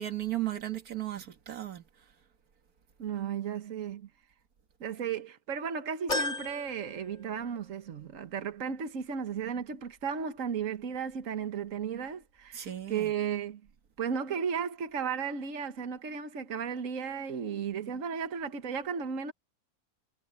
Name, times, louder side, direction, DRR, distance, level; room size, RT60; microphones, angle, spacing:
voice 1, 0.0-1.8 12.5-13.1, right 13 dB, 90° right, 1.9 m, -35 dB
voice 2, 3.0-4.1 4.8-13.6 14.0-19.3, right 7 dB, 65° right, 1.7 m, -34 dB
sound 1, 6.1-7.7 8.2-8.3 9.5-9.6, left 2 dB, 50° left, 2.9 m, -35 dB
omnidirectional pair, 1.5 m